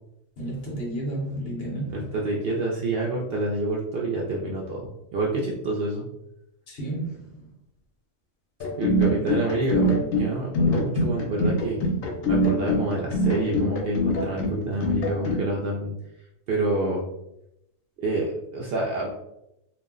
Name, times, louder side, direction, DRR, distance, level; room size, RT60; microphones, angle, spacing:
voice 1, 0.4-2.1 6.7-7.5, right 1 dB, 55° left, -2 dB, 0.9 m, -32 dB
voice 2, 1.9-6.1 8.8-11.8 12.3-15.9 16.5-17.0 18.0-19.1, right 2 dB, 65° right, -2 dB, 0.6 m, -28 dB
sound 1, 8.6-15.4, left 1 dB, 85° left, 1.0 m, -24 dB
2.5 x 2.0 x 3.5 m, 0.84 s
omnidirectional pair, 1.3 m